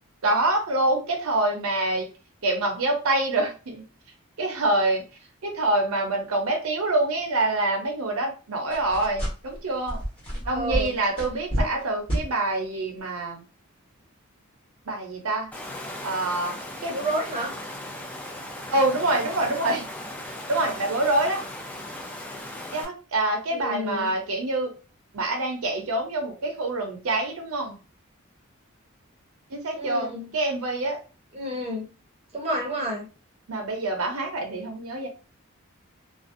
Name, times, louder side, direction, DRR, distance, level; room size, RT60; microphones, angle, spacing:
voice 1, 0.2-2.1 2.4-3.8 4.4-5.0 5.4-10.0 10.5-13.4 14.9-15.5 16.0-16.6 16.8-17.0 18.7-19.9 20.5-21.4 22.7-24.7 25.1-27.8 29.5-31.0 33.5-35.1, right 2 dB, 85° right, 3 dB, 0.7 m, -26 dB
sound 1, 8.7-9.6 9.9-11.8 12.1-12.3, equal, 25° left, 1.1 m, -29 dB
voice 2, 10.4-10.9 11.6-11.7 16.9-17.5 23.5-24.1 29.7-30.3 31.3-31.8 32.3-33.1, equal, 30° right, 1 dB, 0.6 m, -30 dB
Water, 15.5-22.8, left 1 dB, 5° left, 0.3 m, -37 dB
2.5 x 2.0 x 2.5 m, 0.33 s
head